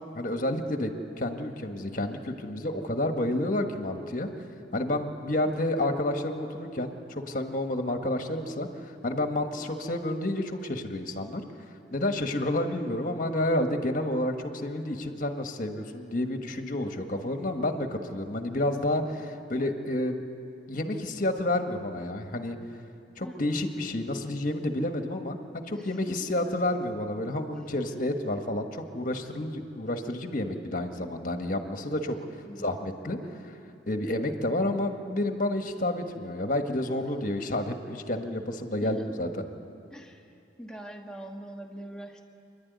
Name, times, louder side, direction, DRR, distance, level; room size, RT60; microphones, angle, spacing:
voice 1, 0.1-4.3 4.7-8.7 9.0-11.4 11.9-20.2 20.7-22.6 23.2-32.2 32.6-33.2 33.4-33.5 33.9-39.4, left 1 dB, 45° left, 5 dB, 1.5 m, -30 dB
voice 2, 25.7-26.4 32.5-32.8 38.8-39.2 39.9-40.3 40.6-42.3, right 1 dB, 5° left, 1 dB, 1.5 m, -43 dB
28.0 x 11.5 x 9.5 m, 2.6 s
head